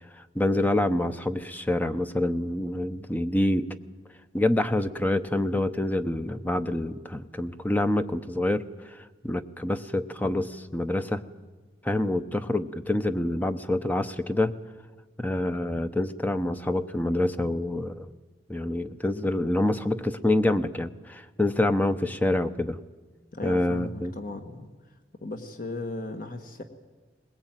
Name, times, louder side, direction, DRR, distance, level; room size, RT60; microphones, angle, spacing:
voice 1, 0.2-3.7 4.3-11.2 11.8-14.5 15.2-18.1 18.5-22.8 23.4-24.1, left 1 dB, 10° left, 10 dB, 0.8 m, -27 dB
voice 2, 23.3-24.7 25.2-26.6, left 2 dB, 50° left, 7 dB, 1.5 m, -36 dB
21.0 x 20.5 x 9.0 m, 1.2 s
head